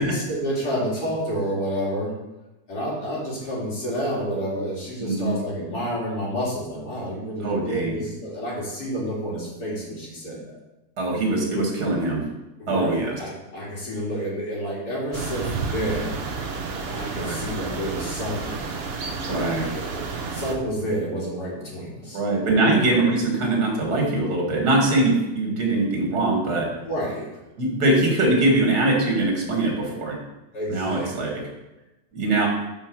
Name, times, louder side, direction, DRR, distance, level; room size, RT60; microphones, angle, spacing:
voice 1, 0.0-2.1 2.7-10.6 12.6-16.2 16.9-18.7 19.3-22.2 22.5-22.7 26.8-27.4 30.5-31.3, equal, 80° left, -6 dB, 2.7 m, -29 dB
voice 2, 5.0-5.3 7.4-8.0 11.0-12.2 12.7-13.2 17.2-17.4 19.2-19.7 22.1-26.7 27.6-30.2 30.7-31.5 32.1-32.5, right 2 dB, 85° right, 0 dB, 2.2 m, -22 dB
sound 1, 15.1-20.5, right 4 dB, 50° right, 0.8 m, -31 dB
5.7 x 4.5 x 6.1 m, 1.0 s
omnidirectional pair, 1.6 m